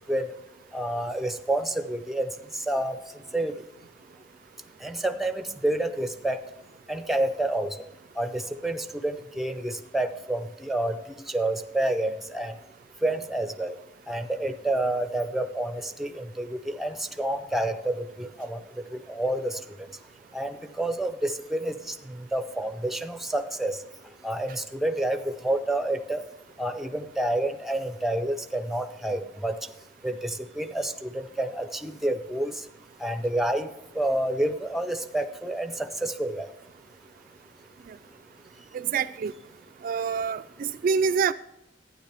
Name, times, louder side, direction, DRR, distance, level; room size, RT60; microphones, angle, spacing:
voice 1, 0.7-2.3 2.7-3.0 3.3-3.5 4.8-6.4 6.9-7.7 8.2-11.0 11.3-12.5 13.0-13.8 14.1-18.6 19.1-19.6 20.3-21.9 22.3-23.8 24.2-26.2 26.6-29.6 30.0-32.5 33.0-33.7 34.0-36.5, right 1 dB, ahead, 0.5 m, -28 dB
voice 2, 38.7-39.3 39.8-41.3, right 6 dB, 50° right, 0.3 m, -26 dB
12.0 x 9.4 x 3.4 m
head